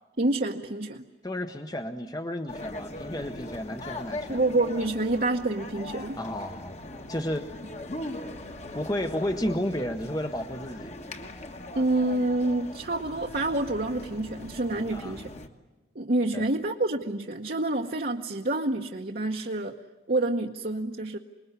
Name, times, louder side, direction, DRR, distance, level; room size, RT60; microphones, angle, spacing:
voice 1, 0.2-1.0 4.3-6.2 11.7-15.3 15.9-19.7 20.1-21.2, right 2 dB, 50° right, 1 dB, 1.0 m, -27 dB
voice 2, 1.2-4.4 6.2-6.8 7.1-7.5 8.7-10.9 14.9-15.2 16.3-16.5, left 1 dB, 20° left, 7 dB, 0.9 m, -32 dB
sound 1, 2.5-15.5, left 1 dB, 35° left, 1.5 m, -40 dB
27.0 x 21.0 x 9.6 m, 1.2 s
head